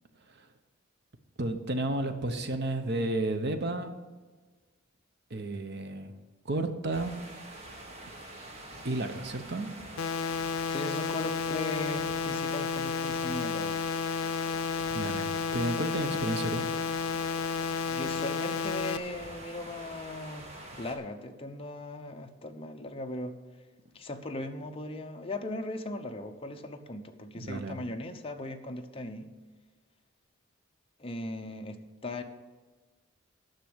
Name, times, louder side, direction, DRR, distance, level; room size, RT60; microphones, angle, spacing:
voice 1, 1.4-3.9 5.3-6.1 6.4-7.1 8.8-9.9 14.9-16.7 27.3-27.8, right 2 dB, 55° right, 7 dB, 0.9 m, -32 dB
sound 1, 6.9-21.0, right 1 dB, 30° right, 1.6 m, -46 dB
sound 2, 10.0-19.0, left 5 dB, 85° left, 0.5 m, -32 dB
voice 2, 10.7-13.8 17.9-20.5 20.8-23.3 23.9-29.3 31.0-32.2, left 2 dB, 30° left, 4 dB, 0.8 m, -38 dB
10.5 x 6.1 x 7.9 m, 1.3 s
head